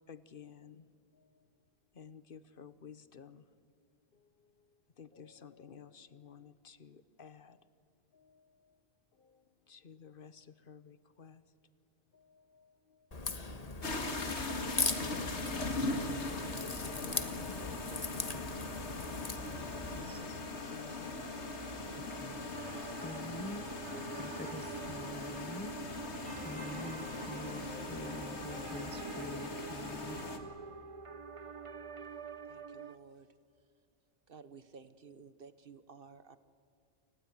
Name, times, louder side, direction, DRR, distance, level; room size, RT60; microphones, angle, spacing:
voice 1, 0.1-0.9 1.1-1.3 1.9-3.4 5.0-7.6 8.1-8.7 9.2-11.4 12.1-13.3 16.1-19.0 19.9-20.4 20.7-21.7, left 6 dB, 55° left, 15 dB, 1.1 m, -54 dB
Crack, 13.1-20.0, left 3 dB, 35° left, 1.4 m, -39 dB
sound 1, 13.8-30.4, left 2 dB, 85° left, 2.4 m, -40 dB
voice 2, 19.9-20.3 22.1-22.4 23.0-23.7 24.1-25.7 26.4-30.2, left 1 dB, 15° left, 12 dB, 0.5 m, -46 dB
sound 2, 22.5-33.0, right 5 dB, 30° right, 0.9 m, -47 dB
voice 3, 32.5-33.3 34.3-36.4, right 5 dB, 55° right, 13 dB, 1.3 m, -54 dB
29.0 x 19.5 x 9.6 m, 2.3 s
omnidirectional pair, 1.1 m